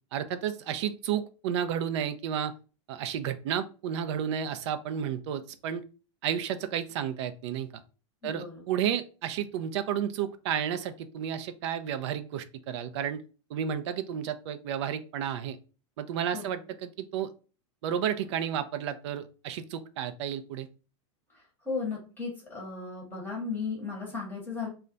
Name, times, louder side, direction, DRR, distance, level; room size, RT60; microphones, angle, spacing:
voice 1, 0.1-2.5 2.9-5.8 6.2-7.8 8.2-13.2 13.5-15.6 16.0-17.3 17.8-20.7, right 9 dB, 65° right, 11 dB, 0.4 m, -32 dB
voice 2, 8.2-8.6 16.3-16.5 21.7-24.7, left 4 dB, 10° left, -2 dB, 0.9 m, -35 dB
2.3 x 2.1 x 3.8 m, 0.34 s
supercardioid pair, 145°, 16 cm